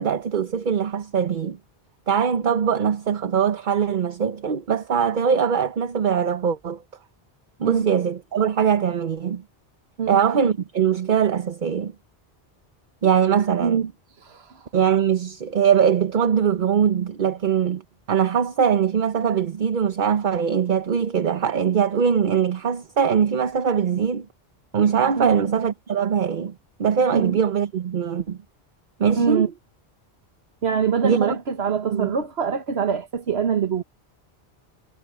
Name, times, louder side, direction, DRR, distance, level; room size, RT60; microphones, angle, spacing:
voice 1, 0.0-1.6 2.1-6.8 7.6-9.4 10.1-11.9 13.0-13.8 14.7-17.8 18.1-24.3 24.7-26.5 26.8-28.4 29.0-29.5 31.0-31.4 31.9-32.1, right 7 dB, 55° right, 0.9 m, -21 dB
voice 2, 13.6-13.9 14.2-14.7 25.2-25.4 27.1-27.4 29.1-29.5 30.6-33.8, right 7 dB, 80° right, 1.5 m, -24 dB
omnidirectional pair, 1.0 m